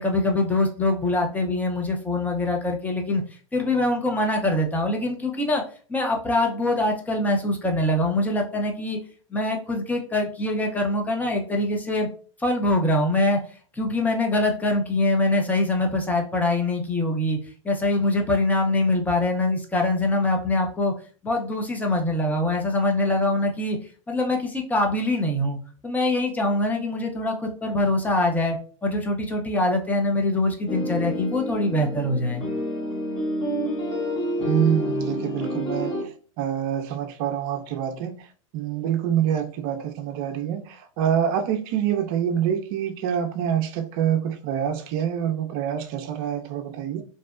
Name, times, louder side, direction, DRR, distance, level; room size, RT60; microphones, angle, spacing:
voice 1, 0.0-3.2 3.5-5.6 5.9-9.0 9.3-12.1 12.4-13.4 13.8-17.4 17.6-20.9 21.2-23.8 24.1-25.6 25.8-32.4, left 2 dB, 10° left, 0.6 m, -23 dB
sound 1, 30.7-36.0, equal, 30° left, 0.9 m, -28 dB
voice 2, 34.4-36.1 36.4-38.3 38.5-47.0, right 9 dB, 50° right, 0.5 m, -26 dB
2.6 x 2.0 x 2.4 m
hypercardioid pair, 105°, 17 cm